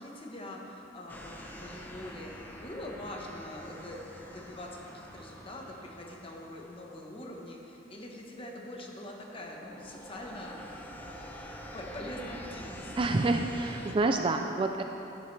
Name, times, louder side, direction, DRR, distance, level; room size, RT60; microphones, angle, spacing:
voice 1, 0.0-11.3 11.7-12.9, left 1 dB, 25° left, 0 dB, 1.1 m, -44 dB
sound 1, 1.1-8.0 8.5-8.8 9.1-13.9, equal, 10° left, 0.7 m, -46 dB
voice 2, 13.0-14.8, right 2 dB, 25° right, 5 dB, 0.3 m, -28 dB
12.0 x 10.0 x 3.3 m, 3.0 s
head